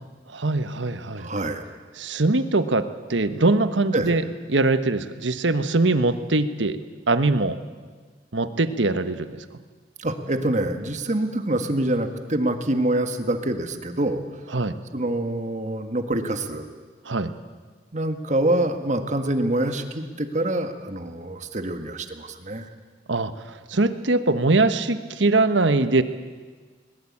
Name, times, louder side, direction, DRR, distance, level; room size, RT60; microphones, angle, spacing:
voice 1, 0.3-1.3 2.0-4.2 4.5-6.8 7.1-7.6 8.3-9.4 14.5-14.7 17.0-17.3 23.1-23.3 23.7-26.0, right 2 dB, 85° right, 11 dB, 1.3 m, -22 dB
voice 2, 1.2-1.6 3.9-4.1 10.0-14.2 14.9-16.7 17.9-22.7, right 1 dB, 40° right, 7 dB, 1.7 m, -25 dB
21.0 x 20.5 x 8.7 m, 1.5 s
head